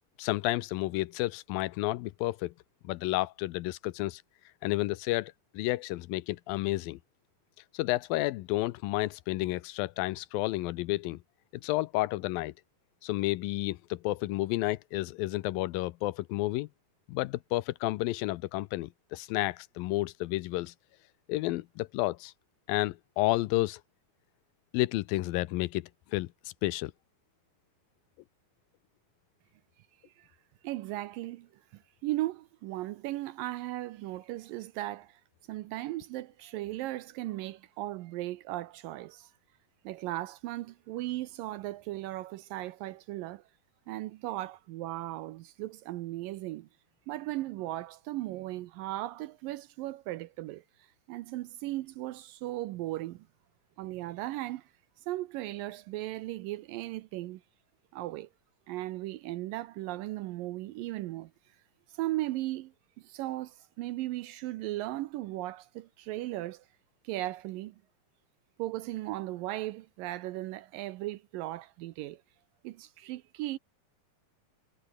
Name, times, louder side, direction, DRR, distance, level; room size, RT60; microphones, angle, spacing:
voice 1, 0.2-2.5 2.8-4.2 4.6-7.0 7.7-11.2 11.5-12.5 13.0-16.7 17.1-20.7 21.3-22.3 22.7-23.8 24.7-26.3 26.6-26.9, left 18 dB, 80° left, 2.4 m, -31 dB
voice 2, 30.6-35.2 35.5-39.3 39.8-43.4 43.9-46.7 47.1-50.6 51.1-53.3 53.8-54.7 55.1-57.4 57.9-58.3 58.7-61.3 61.9-66.7 67.0-67.8 68.6-72.2 72.6-73.6, right 16 dB, 80° right, 2.4 m, -37 dB
omnidirectional pair, 4.1 m